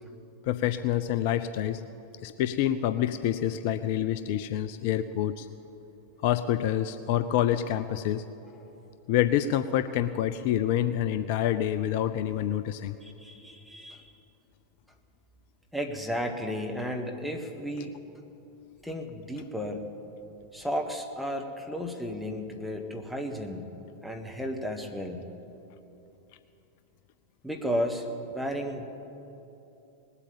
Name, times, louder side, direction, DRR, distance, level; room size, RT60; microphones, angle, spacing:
voice 1, 0.5-1.8 2.2-5.5 6.2-8.2 9.1-13.0, left 11 dB, 50° left, 13 dB, 0.4 m, -27 dB
voice 2, 13.0-14.1 15.7-17.9 18.8-19.9 20.5-23.7 24.0-25.2 27.4-28.9, equal, ahead, 3 dB, 1.5 m, -33 dB
19.5 x 8.3 x 8.9 m, 2.9 s
figure-of-eight pair, 90°, 0 cm